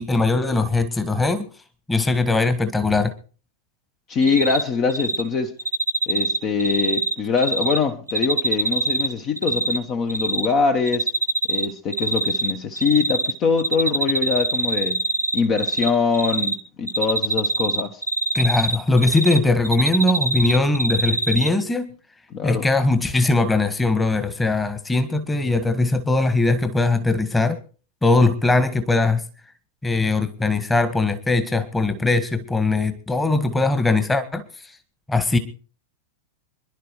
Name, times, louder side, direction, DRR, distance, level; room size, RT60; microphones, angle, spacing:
voice 1, 0.0-1.5 1.9-3.1 18.3-21.9 22.4-27.6 28.0-29.2 29.8-34.4 35.1-35.4, left 3 dB, 10° left, 1.6 m, -20 dB
voice 2, 4.1-5.5 6.1-11.1 11.5-15.0 15.3-18.0 22.3-22.7, left 5 dB, 35° left, 1.2 m, -23 dB
Cricket, 4.2-4.6 4.9-5.2 5.6-7.8 8.1-9.8 10.1-10.5 10.9-11.7 11.9-13.3 13.6-15.9 16.1-16.6 16.9-19.4 19.6-21.5, right 3 dB, 85° right, 1.2 m, -23 dB
26.0 x 11.0 x 3.1 m
figure-of-eight pair, 90°, 0 cm